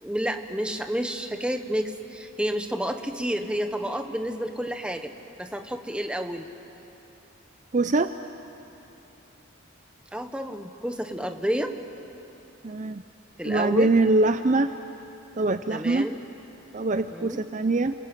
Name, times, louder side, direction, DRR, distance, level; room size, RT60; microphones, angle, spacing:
voice 1, 0.0-5.1 5.4-6.5 10.1-11.7 13.4-13.9 15.7-16.2 17.1-17.4, equal, 5° right, 6 dB, 1.1 m, -30 dB
voice 2, 7.7-8.1 12.6-13.0 13.5-14.7 15.4-16.1 16.7-17.9, right 2 dB, 35° right, 10 dB, 0.5 m, -23 dB
29.0 x 21.5 x 9.1 m, 3.0 s
head